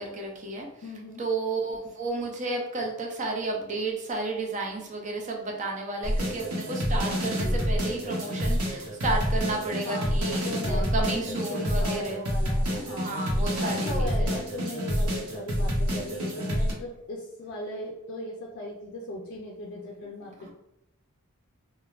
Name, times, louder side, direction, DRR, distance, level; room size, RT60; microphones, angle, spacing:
voice 1, 0.0-0.7 1.2-12.2 13.0-14.3 20.4-20.5, right 2 dB, 35° right, 0 dB, 0.5 m, -32 dB
voice 2, 0.8-1.2 9.8-13.2 13.6-20.5, left 1 dB, 50° left, -1 dB, 0.4 m, -38 dB
sound 1, 6.0-16.7, equal, 90° right, 0.8 m, -28 dB
3.1 x 2.1 x 2.3 m, 0.86 s
head